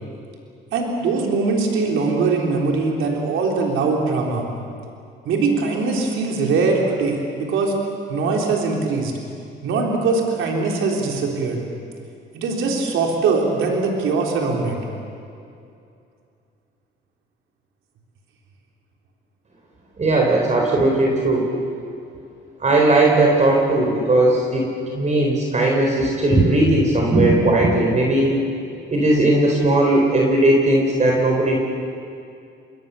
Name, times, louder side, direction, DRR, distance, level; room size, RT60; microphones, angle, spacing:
voice 1, 0.7-4.4 5.3-7.7 8.1-9.1 9.6-11.6 12.3-14.8, right 4 dB, 85° right, 0 dB, 3.7 m, -21 dB
voice 2, 20.0-21.5 22.6-28.4 28.9-31.6, right 2 dB, 35° right, 0 dB, 4.0 m, -17 dB
27.5 x 22.0 x 7.0 m, 2.5 s
cardioid pair, 90°, 20 cm